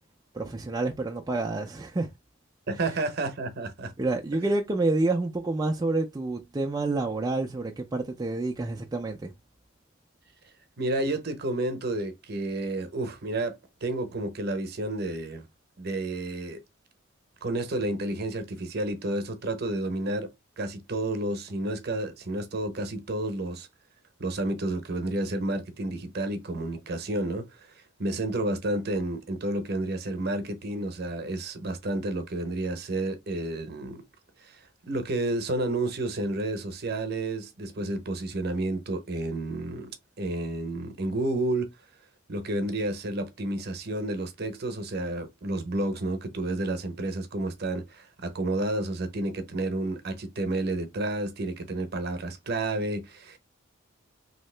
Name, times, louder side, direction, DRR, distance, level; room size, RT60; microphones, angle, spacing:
voice 1, 0.3-2.1 2.7-3.0 4.0-9.3, right 2 dB, 20° right, 0.3 m, -28 dB
voice 2, 2.7-3.9 10.8-15.5 15.8-16.6 17.4-23.7 24.2-27.5 28.0-34.0 34.4-39.9 40.2-41.7 42.3-53.4, right 2 dB, 50° right, 0.8 m, -30 dB
3.1 x 2.8 x 3.2 m
head